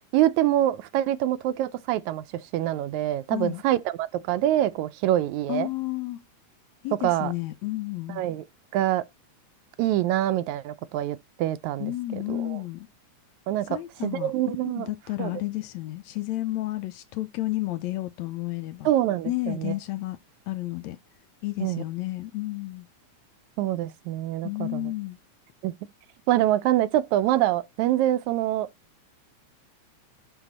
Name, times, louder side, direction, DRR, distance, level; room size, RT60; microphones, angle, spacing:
voice 1, 0.1-5.7 7.0-7.3 8.2-8.4 8.7-9.0 9.8-11.9 12.3-12.6 13.5-14.9 15.2-15.3 18.9-19.7 21.6-21.8 23.6-24.9 25.6-25.7 26.3-28.7, right 13 dB, 80° right, 1.8 m, -25 dB
voice 2, 3.3-3.6 5.5-6.2 6.8-8.2 11.8-12.9 13.7-14.3 14.6-18.9 19.3-20.2 20.5-21.0 21.4-22.9 24.4-25.2, left 17 dB, 75° left, 1.8 m, -31 dB
11.5 x 4.0 x 4.1 m
omnidirectional pair, 3.5 m